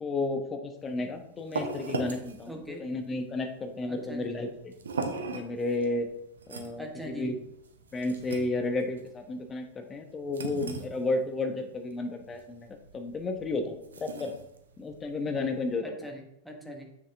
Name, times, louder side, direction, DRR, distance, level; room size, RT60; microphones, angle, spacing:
voice 1, 0.0-2.5 2.8-4.7 5.3-6.1 6.5-6.8 7.1-7.4 7.9-12.7 12.9-14.3 14.8-15.8, left 2 dB, 20° left, 5 dB, 1.1 m, -32 dB
sound 1, 0.8-15.8, right 4 dB, 70° right, 0.9 m, -40 dB
voice 2, 2.5-2.9 3.8-4.3 6.8-7.3 15.8-16.9, equal, ahead, 1 dB, 1.4 m, -42 dB
7.3 x 6.5 x 3.5 m, 0.80 s
figure-of-eight pair, 90°, 0 cm